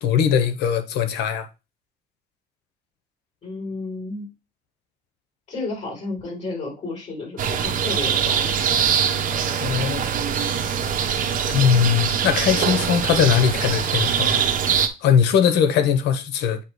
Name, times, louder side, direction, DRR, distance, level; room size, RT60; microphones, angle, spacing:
voice 1, 0.0-1.5 9.3-10.0 10.3-10.5 11.5-14.4 15.0-16.6, left 8 dB, 80° left, 1.0 m, -20 dB
voice 2, 3.4-4.3 5.5-8.7, left 3 dB, 40° left, 4.6 m, -32 dB
sound 1, 7.4-14.9, right 7 dB, 55° right, 1.0 m, -23 dB
8.5 x 2.9 x 4.6 m
cardioid pair, 110°, 17 cm